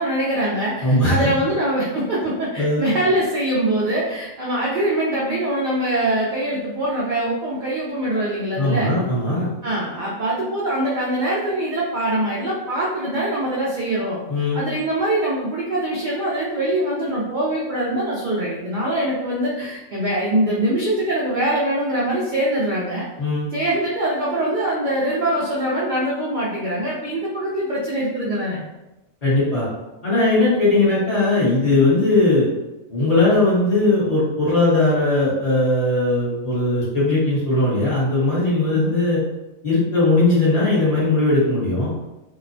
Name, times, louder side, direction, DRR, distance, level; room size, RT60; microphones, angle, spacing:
voice 1, 0.0-9.0 9.6-14.2 14.5-23.1 23.5-28.6 38.7-38.9, right 1 dB, 75° right, -6 dB, 0.4 m, -23 dB
voice 2, 0.8-1.3 2.6-2.8 8.6-9.5 14.3-14.6 23.2-23.5 29.2-29.7 30.0-32.5 32.9-39.2 39.6-41.9, left 2 dB, 30° left, -10 dB, 1.0 m, -19 dB
2.8 x 2.0 x 2.5 m, 1.0 s
omnidirectional pair, 1.4 m